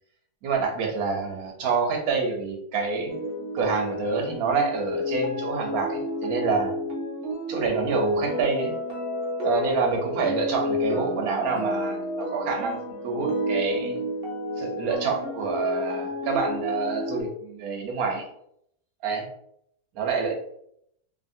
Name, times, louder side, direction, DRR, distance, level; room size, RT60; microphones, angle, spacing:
voice 1, 0.4-3.1 3.5-6.7 7.5-8.7 9.4-14.0 14.6-18.3 19.0-19.3 19.9-20.3, right 4 dB, 65° right, 1 dB, 1.2 m, -27 dB
sound 1, 3.1-17.2, left 1 dB, 50° right, 0.8 m, -30 dB
2.9 x 2.8 x 2.6 m, 0.72 s
omnidirectional pair, 1.7 m